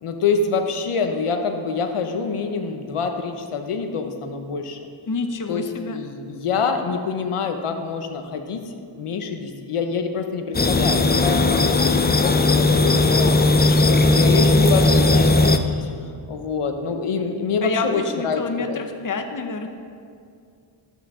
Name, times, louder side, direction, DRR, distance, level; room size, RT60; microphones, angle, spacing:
voice 1, 0.0-4.8 5.5-15.9 16.3-18.8, left 5 dB, 85° left, 6 dB, 1.0 m, -26 dB
voice 2, 5.1-6.0 17.6-19.7, left 3 dB, 40° left, 6 dB, 0.9 m, -28 dB
sound 1, 10.5-15.6, left 2 dB, 20° left, 0.6 m, -17 dB
12.0 x 8.4 x 3.7 m, 2.3 s
cardioid pair, 50°, 50 cm